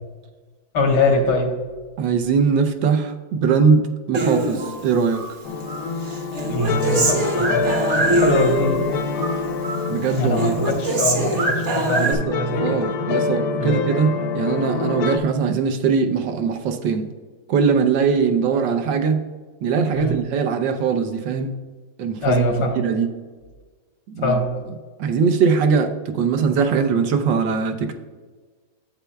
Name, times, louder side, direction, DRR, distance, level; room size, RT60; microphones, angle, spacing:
voice 1, 0.7-1.5 6.5-8.9 9.3-9.5 10.1-12.8 13.6-13.8 19.9-20.2 22.2-22.7 24.2-24.5, left 2 dB, 80° left, 2 dB, 2.1 m, -23 dB
voice 2, 2.0-5.2 9.9-10.6 12.0-12.3 12.6-17.1 17.5-19.2 19.6-21.5 22.0-22.4 22.8-23.1 24.1-24.4 25.0-27.9, right 6 dB, 70° right, 6 dB, 1.3 m, -21 dB
Human voice, 4.1-5.3 5.7-8.9 9.2-9.9 10.1-12.1, right 2 dB, 45° right, 1.1 m, -23 dB
sound 1, 5.5-15.2, left 4 dB, 65° left, 1.0 m, -26 dB
11.5 x 7.9 x 2.2 m, 1.4 s
omnidirectional pair, 2.2 m